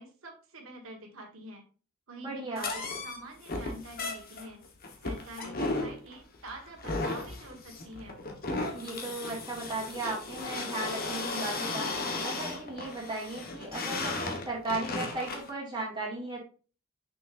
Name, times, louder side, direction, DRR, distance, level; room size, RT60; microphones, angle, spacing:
voice 1, 0.0-1.6 2.1-4.6 5.0-8.2, right 1 dB, 75° right, 1 dB, 1.4 m, -46 dB
voice 2, 2.2-2.7 8.7-11.9 12.2-16.4, right 2 dB, 20° right, -4 dB, 2.1 m, -36 dB
sound 1, 2.6-15.5, left 2 dB, 45° left, 1.2 m, -35 dB
6.2 x 6.1 x 2.5 m, 0.37 s
head